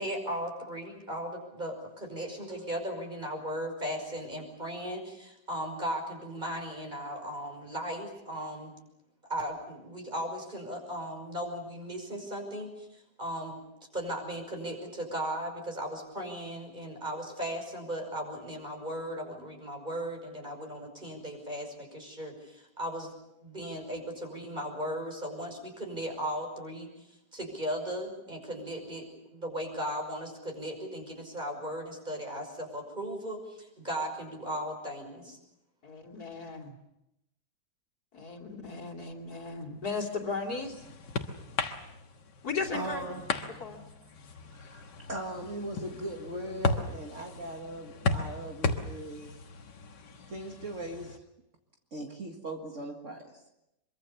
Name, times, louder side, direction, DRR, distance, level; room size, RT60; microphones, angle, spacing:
voice 1, 0.0-8.8 9.3-12.9 13.2-13.6 13.9-23.1 23.4-27.1 27.3-35.4, equal, 25° right, 3 dB, 5.8 m, -37 dB
voice 2, 35.8-36.7 38.1-40.8 42.4-43.1 43.5-43.8, left 4 dB, 60° left, 2 dB, 3.2 m, -36 dB
sound 1, 40.1-51.2, left 3 dB, 85° left, 2.1 m, -36 dB
voice 3, 42.7-43.2 44.5-49.3 50.3-51.2 51.9-53.4, right 1 dB, 45° right, 2 dB, 2.2 m, -39 dB
24.5 x 23.5 x 7.0 m, 0.85 s
omnidirectional pair, 1.8 m